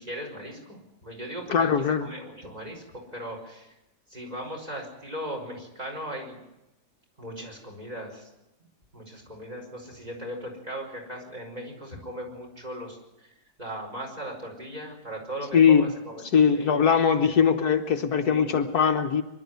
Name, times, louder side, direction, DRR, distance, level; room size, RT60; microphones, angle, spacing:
voice 1, 0.0-1.7 2.0-3.7 4.1-6.4 7.2-8.3 8.6-8.7 8.9-13.3 13.6-16.9 17.3-17.5 18.2-18.5, equal, 25° right, 0 dB, 5.3 m, -38 dB
voice 2, 1.5-2.1 15.5-15.9 16.3-19.2, left 7 dB, 70° left, 6 dB, 1.7 m, -21 dB
24.0 x 12.0 x 9.5 m, 0.92 s
omnidirectional pair, 1.7 m